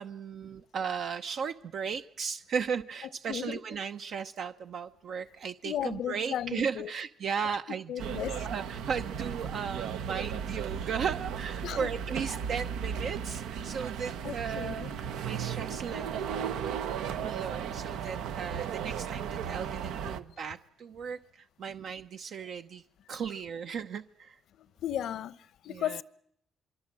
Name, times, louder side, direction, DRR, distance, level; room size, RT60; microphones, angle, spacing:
voice 1, 0.0-22.8 23.1-24.4 25.7-26.0, right 6 dB, 65° right, 0.9 m, -36 dB
voice 2, 3.3-3.6 5.6-6.9 7.9-8.5 11.6-11.9 14.2-15.0 18.0-18.3 24.6-26.0, left 10 dB, 75° left, 0.9 m, -35 dB
sound 1, 8.0-20.2, right 7 dB, 90° right, 1.3 m, -35 dB
24.5 x 24.0 x 7.6 m
cardioid pair, 90°, 0 cm